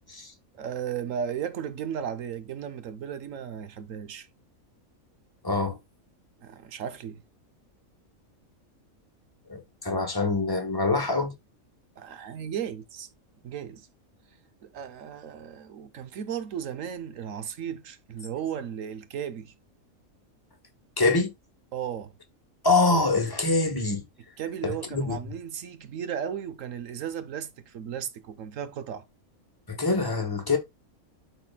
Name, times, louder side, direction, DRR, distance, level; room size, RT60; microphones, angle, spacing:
voice 1, 0.6-4.3 6.4-7.2 12.0-13.1 13.4-13.9 14.6-19.5 21.7-22.1 24.4-29.0, right 8 dB, 70° right, 1.1 m, -35 dB
voice 2, 5.4-5.8 9.5-11.3 21.0-21.3 22.6-24.0 24.6-25.2 29.7-30.6, left 3 dB, 15° left, 1.2 m, -25 dB
12.5 x 4.1 x 2.2 m
omnidirectional pair, 1.5 m